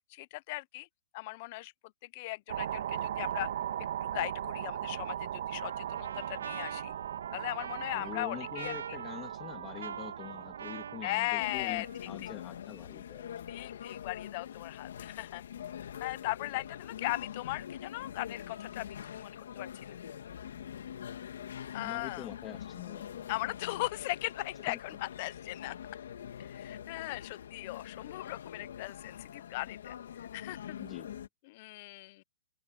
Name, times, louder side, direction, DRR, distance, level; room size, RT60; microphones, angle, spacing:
voice 1, 0.1-0.9 1.1-1.7 2.0-3.5 4.0-6.9 7.3-8.7 11.0-11.9 12.2-12.3 13.5-15.4 16.0-20.0 21.7-22.3 23.3-25.8 26.4-30.8 31.5-32.2, left 21 dB, 35° left, 0.5 m, -38 dB
sound 1, 2.5-11.2, right 10 dB, 60° right, 1.3 m, -38 dB
Trumpet, 5.6-12.2, right 7 dB, 80° right, 0.5 m, -44 dB
voice 2, 7.9-13.5 21.8-23.3 24.7-24.8 30.8-31.3, left 10 dB, 15° left, 1.9 m, -45 dB
sound 2, 11.4-31.3, left 9 dB, 65° left, 2.2 m, -44 dB
open air
hypercardioid pair, 160°, 0 cm